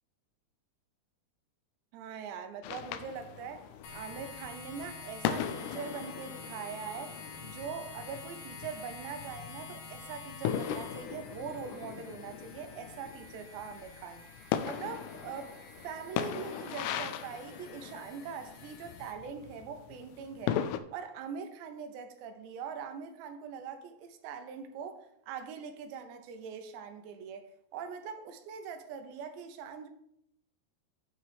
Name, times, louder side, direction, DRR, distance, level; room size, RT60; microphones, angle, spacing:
voice 1, 1.9-7.1 7.4-14.2 14.6-15.5 15.8-20.6 20.9-29.9, right 6 dB, 85° right, 2.9 m, -42 dB
sound 1, 2.6-20.8, left 9 dB, 85° left, 2.3 m, -39 dB
sound 2, 3.8-19.1, left 4 dB, 65° left, 1.7 m, -49 dB
8.5 x 3.8 x 6.5 m
omnidirectional pair, 5.0 m